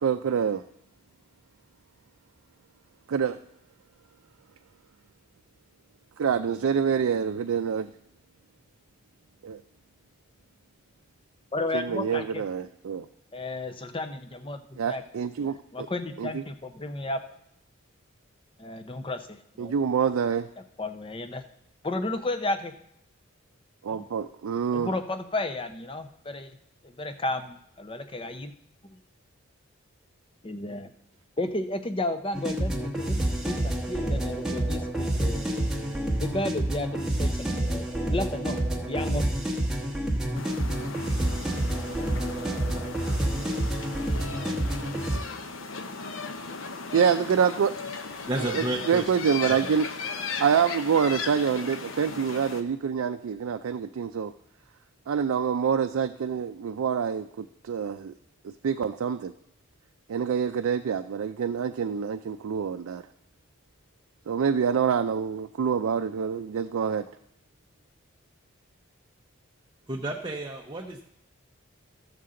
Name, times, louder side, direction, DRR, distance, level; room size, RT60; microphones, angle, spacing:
voice 1, 0.0-0.6 3.1-3.4 6.2-7.9 9.4-9.6 11.7-13.1 14.8-15.6 16.2-16.4 19.6-20.5 23.8-24.9 46.9-47.7 48.4-49.9 50.4-54.3 55.1-58.1 58.6-59.3 60.1-63.0 64.3-67.0, right 7 dB, 80° right, 7 dB, 0.4 m, -26 dB
voice 2, 11.5-12.4 13.3-15.0 15.4-17.2 18.6-19.7 20.8-21.4 21.8-22.8 23.9-24.1 24.7-26.6 26.8-28.5 30.4-30.9 31.4-35.4 36.2-38.6 38.9-39.2, left 2 dB, 25° left, 8 dB, 0.6 m, -33 dB
sound 1, 32.3-45.2, right 1 dB, ahead, 1.0 m, -28 dB
sound 2, 40.3-52.6, left 4 dB, 65° left, 0.8 m, -37 dB
voice 3, 48.2-49.1 49.4-49.7 69.9-71.0, right 1 dB, 20° right, 0 dB, 0.6 m, -32 dB
14.0 x 6.6 x 3.7 m, 0.75 s
head